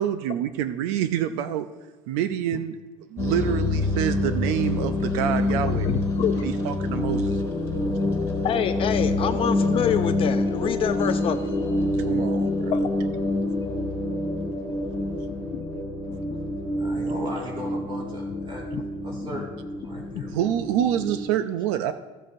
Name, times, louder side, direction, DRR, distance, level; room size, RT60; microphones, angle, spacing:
voice 1, 0.0-1.7 2.1-2.8 3.1-5.9 6.4-7.4 12.1-12.8 20.3-21.9, right 10 dB, 85° right, 11 dB, 0.5 m, -27 dB
sound 1, 3.2-21.2, left 2 dB, 15° left, 2.0 m, -26 dB
voice 2, 5.8-6.5 8.0-11.4 12.7-12.8 15.5-15.6 16.1-16.2 18.7-18.8 20.0-20.2, left 9 dB, 35° left, 9 dB, 0.4 m, -27 dB
voice 3, 16.6-18.6 19.0-20.5, equal, 30° right, -3 dB, 3.5 m, -37 dB
15.0 x 7.5 x 2.6 m, 1.2 s
cardioid pair, 150°, 17 cm